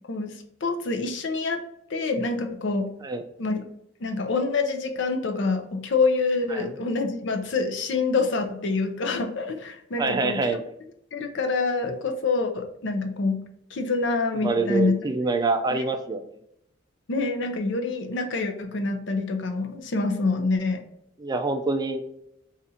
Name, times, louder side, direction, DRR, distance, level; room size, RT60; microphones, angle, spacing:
voice 1, 0.1-1.6 1.9-2.9 3.4-3.6 4.0-10.4 11.1-13.4 13.7-15.0 15.7-15.8 17.1-20.8, left 3 dB, 65° left, 5 dB, 0.6 m, -26 dB
voice 2, 10.0-10.6 14.4-16.2 21.2-22.0, right 3 dB, 20° right, 7 dB, 0.3 m, -25 dB
4.1 x 2.5 x 4.2 m, 0.77 s
head